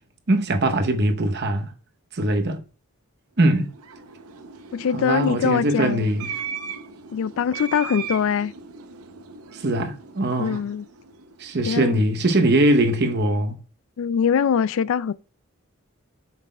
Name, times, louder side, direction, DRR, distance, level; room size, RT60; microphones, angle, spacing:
voice 1, 0.3-1.7 2.1-2.6 3.4-3.7 4.9-6.3 9.5-10.6 11.4-13.6, right 1 dB, 50° right, 0.8 m, -21 dB
sound 1, 3.5-12.0, right 6 dB, 80° right, 0.6 m, -38 dB
voice 2, 4.7-6.1 7.1-8.5 10.4-10.9 11.7-12.0 14.0-15.1, left 7 dB, 60° left, 0.3 m, -23 dB
7.5 x 5.8 x 2.2 m
head